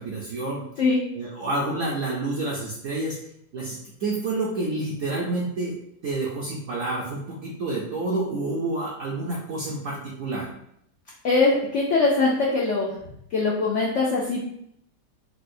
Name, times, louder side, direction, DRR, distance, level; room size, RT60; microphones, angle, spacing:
voice 1, 0.0-0.6 1.1-3.2 3.5-5.7 6.0-10.5, right 2 dB, 70° right, -4 dB, 0.7 m, -29 dB
voice 2, 11.2-12.9 13.3-14.4, left 3 dB, 90° left, -4 dB, 0.6 m, -22 dB
4.5 x 2.0 x 2.5 m, 0.73 s
omnidirectional pair, 1.8 m